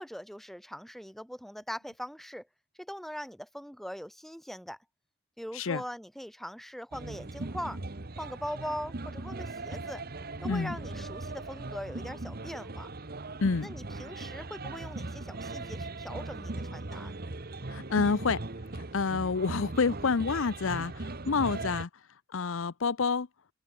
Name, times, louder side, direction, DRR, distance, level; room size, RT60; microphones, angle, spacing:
voice 1, 0.0-2.5 2.8-4.8 5.4-7.8 8.2-10.0 10.4-12.9 13.6-17.2, equal, ahead, 3.4 m, -41 dB
sound 1, 6.9-21.8, right 2 dB, 45° right, 1.2 m, -39 dB
voice 2, 17.7-18.4 18.9-21.9 22.3-23.3, left 4 dB, 60° left, 0.6 m, -28 dB
head